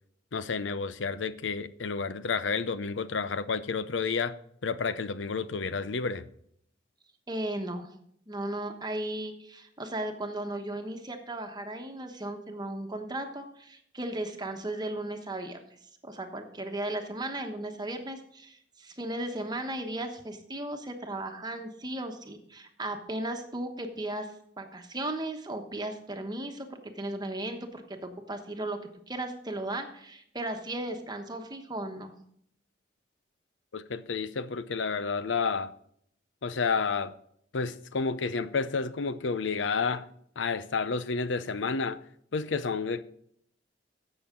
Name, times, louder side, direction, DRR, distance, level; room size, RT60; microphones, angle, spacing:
voice 1, 0.3-4.4 4.6-6.2 33.7-35.7 36.4-37.1 37.5-40.0 40.4-42.0 42.3-43.0, left 4 dB, 90° left, 0.6 m, -30 dB
voice 2, 7.3-7.9 8.3-15.6 16.0-24.3 24.6-28.8 29.1-32.1, right 1 dB, 25° right, 1.1 m, -36 dB
15.5 x 6.4 x 3.7 m
head